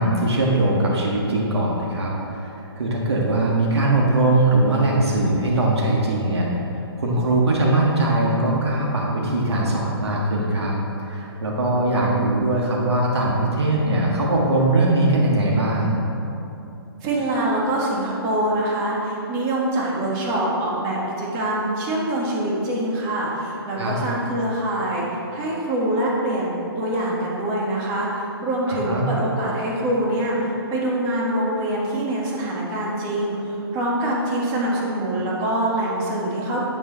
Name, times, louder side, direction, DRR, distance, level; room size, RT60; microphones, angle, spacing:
voice 1, 0.0-6.5 7.0-16.0 23.8-24.0 28.7-29.1, right 2 dB, 85° right, -3 dB, 1.5 m, -21 dB
voice 2, 17.0-36.6, right 1 dB, 30° right, -4 dB, 1.7 m, -24 dB
8.4 x 6.3 x 4.0 m, 2.9 s
hypercardioid pair, 145°, 13 cm